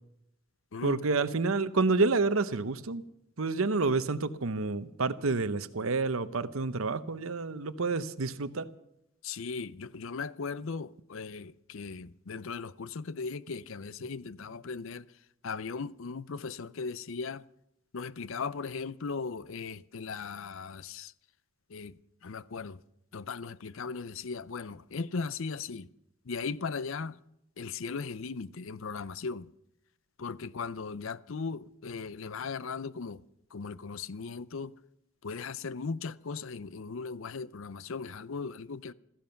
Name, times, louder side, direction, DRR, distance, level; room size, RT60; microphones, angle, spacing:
voice 1, 0.8-3.0 3.4-8.7, right 3 dB, 75° right, 0.8 m, -29 dB
voice 2, 9.2-15.1 15.4-17.4 17.9-21.1 21.7-22.8 23.1-25.9 26.3-27.2 27.6-29.5 30.2-33.2 33.5-34.7 35.2-38.9, left 4 dB, 65° left, 0.6 m, -38 dB
16.0 x 14.5 x 5.8 m
head